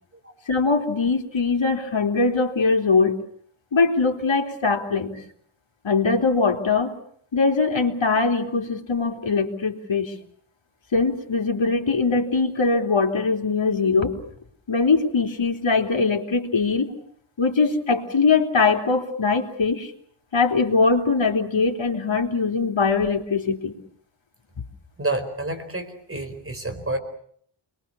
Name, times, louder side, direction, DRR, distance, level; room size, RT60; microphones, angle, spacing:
voice 1, 0.5-3.2 3.7-5.2 5.8-6.9 7.3-10.1 10.9-14.2 14.7-16.9 17.4-19.9 20.3-23.7, left 4 dB, 65° left, 3 dB, 3.4 m, -21 dB
voice 2, 25.0-27.0, right 2 dB, 25° right, 6 dB, 4.6 m, -29 dB
29.0 x 22.5 x 7.0 m, 0.63 s
wide cardioid pair, 105°, 48 cm